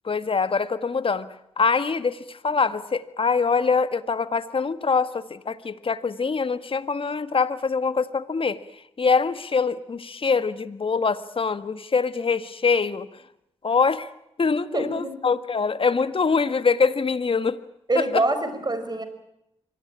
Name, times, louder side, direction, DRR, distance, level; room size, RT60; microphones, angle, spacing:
voice 1, 0.0-1.3 1.6-8.6 9.0-13.1 13.6-14.1 14.4-17.6, left 5 dB, 50° left, 13 dB, 1.6 m, -24 dB
voice 2, 14.7-15.2 17.9-19.0, right 2 dB, 35° right, 10 dB, 4.9 m, -25 dB
24.5 x 18.5 x 8.8 m, 0.82 s
supercardioid pair, 45°, 12 cm